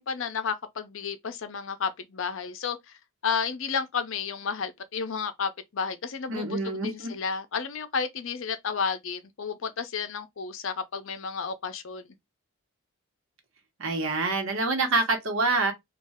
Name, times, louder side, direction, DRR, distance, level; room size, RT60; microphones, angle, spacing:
voice 1, 0.0-2.8 3.2-12.1, left 6 dB, 60° left, 0.5 m, -32 dB
voice 2, 6.3-7.1 13.8-15.7, right 3 dB, 70° right, 1.0 m, -26 dB
3.1 x 2.4 x 3.5 m
head